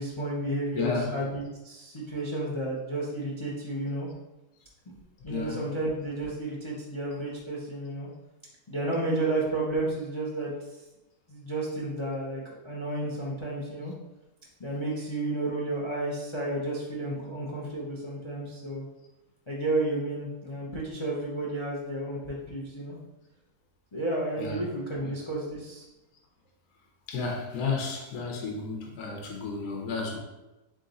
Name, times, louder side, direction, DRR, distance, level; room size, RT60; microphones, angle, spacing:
voice 1, 0.0-4.1 4.9-5.0 5.2-8.1 8.7-10.5 11.3-13.9 14.6-18.9 19.5-23.0 23.9-25.8, right 2 dB, 50° left, -3 dB, 0.3 m, -32 dB
voice 2, 0.7-1.1 5.3-5.7 24.4-24.6 25.0-25.1 27.1-30.2, left 4 dB, 70° left, 0 dB, 1.4 m, -32 dB
3.8 x 3.5 x 4.0 m, 1.0 s
omnidirectional pair, 1.7 m